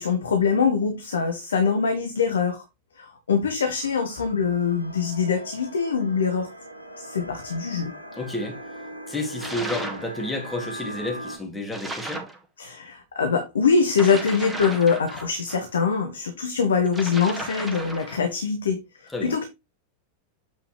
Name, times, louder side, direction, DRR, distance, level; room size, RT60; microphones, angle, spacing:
voice 1, 0.0-2.6 3.0-6.5 7.0-7.9 12.6-18.8 19.2-19.4, left 5 dB, 70° left, 1.2 m, -23 dB
sound 1, 3.7-11.4, equal, 90° right, 1.9 m, -40 dB
voice 2, 8.2-8.6 9.1-12.3 19.1-19.4, left 2 dB, 10° left, 2.5 m, -31 dB
sound 2, 9.4-10.1 11.7-12.4 13.9-15.6 16.9-18.2, right 2 dB, 5° right, 1.8 m, -35 dB
8.7 x 5.3 x 3.2 m
figure-of-eight pair, 90°, 0 cm